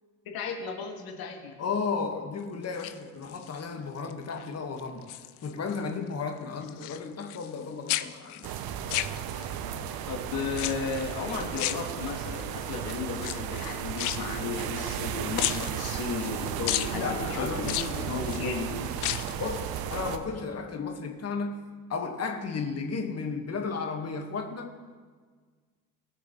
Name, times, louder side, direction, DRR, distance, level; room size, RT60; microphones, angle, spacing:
voice 1, 0.3-1.5 10.0-18.7, left 5 dB, 50° left, 2.4 m, -34 dB
voice 2, 1.6-5.1 5.4-8.6 16.9-18.4 19.3-24.7, left 5 dB, 35° left, 1.9 m, -34 dB
sound 1, 2.6-3.6 4.1-4.5 4.8-5.8 6.1-7.6 7.9-9.7 10.5-11.1 11.5-12.4 13.1-15.1 15.4-16.3 16.7-16.9 17.6-18.4 18.9-19.4 19.7-19.8, left 15 dB, 70° left, 0.6 m, -34 dB
sound 2, 8.4-20.2, right 9 dB, 50° right, 1.0 m, -34 dB
20.0 x 6.7 x 3.3 m
hypercardioid pair, 60°, 45 cm